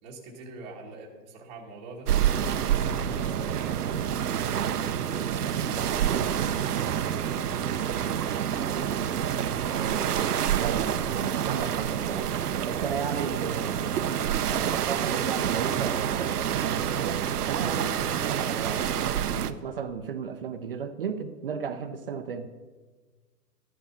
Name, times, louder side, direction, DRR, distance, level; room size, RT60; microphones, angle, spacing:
voice 1, 0.0-2.1 2.7-9.5, right 2 dB, 15° right, -5 dB, 1.3 m, -45 dB
sound 1, 2.1-19.5, right 9 dB, 70° right, 0.9 m, -28 dB
voice 2, 9.6-12.3 12.7-18.9 19.3-22.5, right 6 dB, 35° right, 9 dB, 0.7 m, -35 dB
13.5 x 10.0 x 5.7 m, 1.3 s
hypercardioid pair, 165°, 47 cm